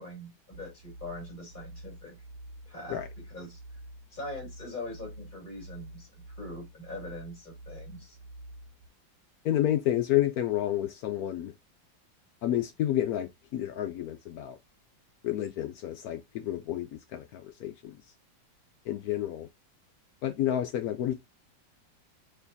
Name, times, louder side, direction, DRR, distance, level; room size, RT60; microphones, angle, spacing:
voice 1, 0.0-2.2 2.7-3.6 4.1-8.2, left 1 dB, 25° left, 2.3 m, -42 dB
sound 1, 0.5-8.9, right 1 dB, 85° right, 1.3 m, -48 dB
voice 2, 9.4-11.5 12.4-14.6 15.2-18.0 18.8-19.5 20.2-21.1, left 12 dB, 75° left, 0.9 m, -30 dB
4.4 x 3.1 x 2.7 m
omnidirectional pair, 2.0 m